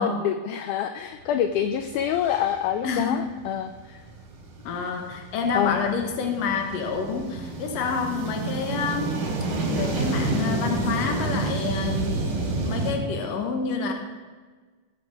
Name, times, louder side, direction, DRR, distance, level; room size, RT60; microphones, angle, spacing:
voice 1, 0.0-4.0 5.5-5.8, left 10 dB, 90° left, 9 dB, 1.7 m, -26 dB
sound 1, 1.4-1.5 1.9-12.9, right 3 dB, 70° right, 3.8 m, -30 dB
voice 2, 2.8-3.3 4.6-9.2 9.7-12.3 12.6-13.9, left 5 dB, 60° left, 4 dB, 2.1 m, -28 dB
17.0 x 6.2 x 4.7 m, 1.4 s
omnidirectional pair, 4.1 m